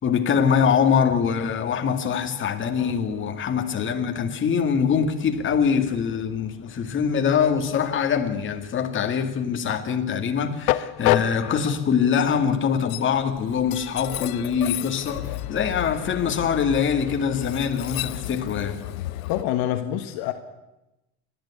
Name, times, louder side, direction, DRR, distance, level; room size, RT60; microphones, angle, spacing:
voice 1, 0.0-18.8, left 7 dB, 30° left, 2.1 m, -23 dB
Train, 2.7-19.4, left 15 dB, 90° left, 1.1 m, -32 dB
voice 2, 19.3-20.3, left 12 dB, 60° left, 1.5 m, -26 dB
29.5 x 11.5 x 8.4 m
cardioid pair, 140°, 41 cm